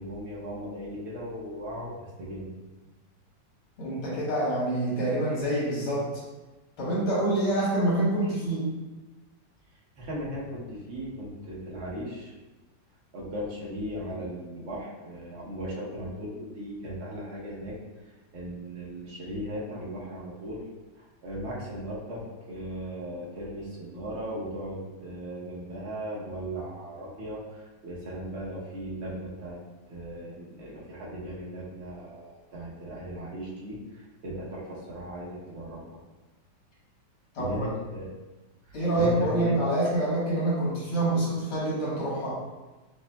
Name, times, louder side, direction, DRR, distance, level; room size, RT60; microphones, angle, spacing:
voice 1, 0.0-2.5 10.0-12.3 13.1-17.8 18.3-20.6 20.9-22.2 22.5-29.6 29.9-35.8 37.4-38.1 38.7-39.5, equal, 55° right, -6 dB, 0.7 m, -37 dB
voice 2, 3.8-6.1 6.8-8.7 37.4-37.6 38.7-42.4, right 1 dB, 85° left, -7 dB, 2.3 m, -26 dB
6.5 x 2.2 x 2.2 m, 1.2 s
omnidirectional pair, 2.3 m